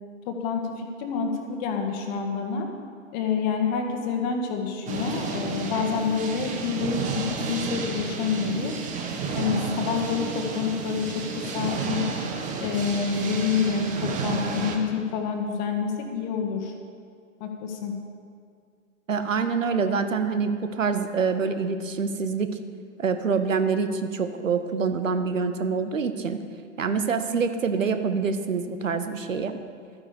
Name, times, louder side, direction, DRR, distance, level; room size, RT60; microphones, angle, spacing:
voice 1, 0.3-2.7 3.1-8.7 9.3-12.1 12.6-16.7 17.4-17.9, left 6 dB, 35° left, 4 dB, 1.5 m, -28 dB
sound 1, 4.9-14.8, right 4 dB, 20° right, 1.1 m, -31 dB
voice 2, 19.1-22.6 23.0-26.4 26.8-29.5, right 5 dB, 70° right, 9 dB, 1.0 m, -26 dB
12.5 x 9.8 x 5.1 m, 2.2 s
figure-of-eight pair, 110°, 40 cm